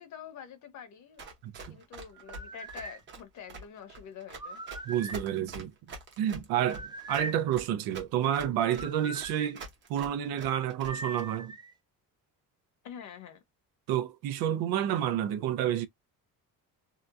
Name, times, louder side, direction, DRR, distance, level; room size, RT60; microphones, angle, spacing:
voice 1, 0.0-1.3 1.7-4.6 12.8-13.4, left 8 dB, 55° left, 0.9 m, -46 dB
Run, 1.2-11.2, right 3 dB, 35° right, 0.8 m, -45 dB
voice 2, 1.4-1.8 4.9-5.7 6.2-6.8 7.1-9.6 9.9-11.5 13.9-15.9, right 10 dB, 85° right, 0.6 m, -29 dB
sound 1, 2.1-3.0 4.3-5.3 6.6-7.4 8.6-9.5 10.8-11.7, right 2 dB, 15° right, 0.4 m, -41 dB
2.8 x 2.2 x 2.4 m
cardioid pair, 165°, 35 cm